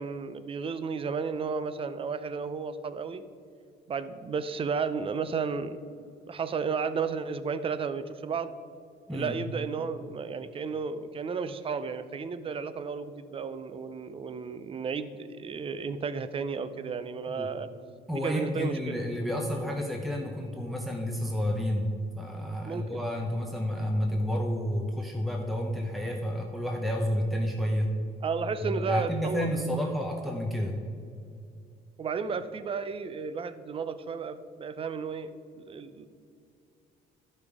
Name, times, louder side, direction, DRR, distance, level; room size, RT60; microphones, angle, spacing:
voice 1, 0.0-3.2 3.9-5.8 6.3-8.5 9.1-17.7 18.2-19.1 22.6-23.0 28.2-29.8 32.0-36.1, right 5 dB, 35° right, 12 dB, 0.6 m, -33 dB
voice 2, 18.1-27.9 28.6-30.8, equal, ahead, 1 dB, 0.8 m, -30 dB
12.0 x 5.4 x 4.8 m, 2.4 s
cardioid pair, 110°, 17 cm